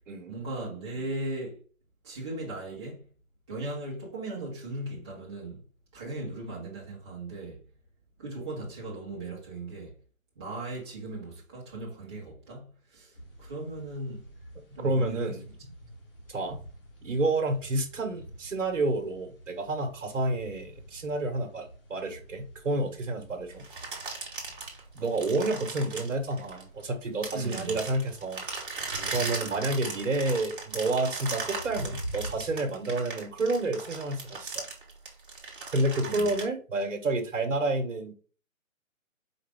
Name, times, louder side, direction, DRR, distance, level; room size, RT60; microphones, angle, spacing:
voice 1, 0.3-1.6 2.0-3.0 3.5-5.6 5.9-7.6 8.2-10.0 10.4-13.1 13.4-14.3 14.7-15.4 15.8-15.9 27.3-27.8 29.2-29.6 36.0-36.2, right 2 dB, 20° right, 1.1 m, -38 dB
sound 1, 13.1-32.6, right 1 dB, 40° left, 1.3 m, -47 dB
voice 2, 14.8-15.4 16.3-16.6 17.0-23.6 24.9-28.4 29.1-34.7 35.7-38.1, right 2 dB, 65° right, 1.3 m, -29 dB
sound 2, 23.6-26.8 27.2-36.4, right 4 dB, 40° right, 1.3 m, -37 dB
4.9 x 2.5 x 3.5 m
hypercardioid pair, 165°, 41 cm